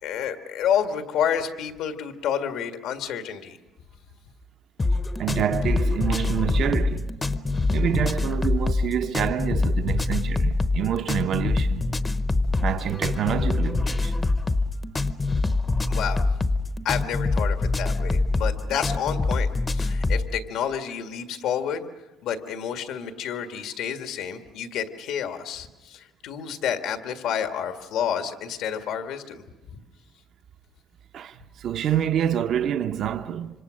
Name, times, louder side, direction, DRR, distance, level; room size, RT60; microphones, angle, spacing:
voice 1, 0.0-3.6 15.9-16.3 16.8-21.9 22.2-29.8, left 8 dB, 80° left, 1.8 m, -29 dB
sound 1, 4.8-20.3, left 3 dB, 20° left, 0.8 m, -24 dB
voice 2, 5.2-7.2 7.7-11.9 12.6-14.3 31.1-33.6, right 10 dB, 55° right, 0.8 m, -27 dB
26.0 x 26.0 x 6.4 m
cardioid pair, 145°, 0 cm